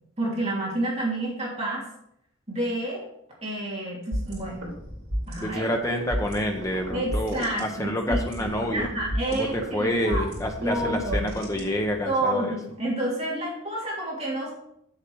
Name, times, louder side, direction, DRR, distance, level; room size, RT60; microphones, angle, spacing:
voice 1, 0.2-1.8 2.5-3.1 3.4-4.7 5.3-5.6 6.9-10.3 10.6-11.3 12.0-14.5, right 1 dB, 30° right, -4 dB, 2.5 m, -29 dB
sound 1, 4.1-12.1, equal, 85° right, 3.0 m, -33 dB
voice 2, 5.4-8.9 9.3-12.5, equal, 15° left, 2 dB, 1.0 m, -28 dB
6.8 x 6.8 x 4.8 m, 0.74 s
head